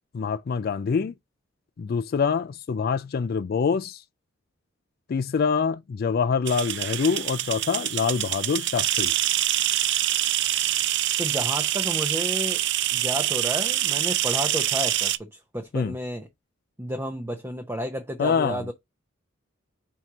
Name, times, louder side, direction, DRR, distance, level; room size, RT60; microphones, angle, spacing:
voice 1, 0.1-1.1 1.8-4.0 5.1-9.1 15.7-15.9 18.2-18.7, left 5 dB, 50° left, 0.3 m, -25 dB
sound 1, 6.5-15.2, right 13 dB, 60° right, 0.5 m, -25 dB
voice 2, 11.2-12.6 12.9-16.3 16.8-18.7, equal, 10° right, 0.7 m, -31 dB
4.6 x 4.2 x 4.8 m
head